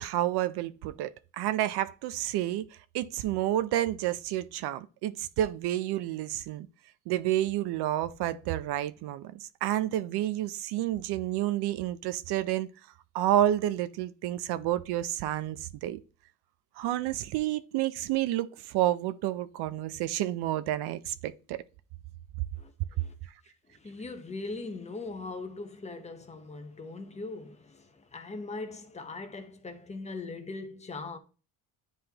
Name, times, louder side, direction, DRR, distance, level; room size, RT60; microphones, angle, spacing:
voice 1, 0.0-2.7 2.9-6.7 7.1-12.7 13.1-16.0 16.8-21.6, right 13 dB, 80° right, 0.6 m, -30 dB
voice 2, 22.6-23.1 23.7-31.2, left 3 dB, 15° left, 0.8 m, -40 dB
9.8 x 3.6 x 2.9 m
cardioid pair, 150°, 39 cm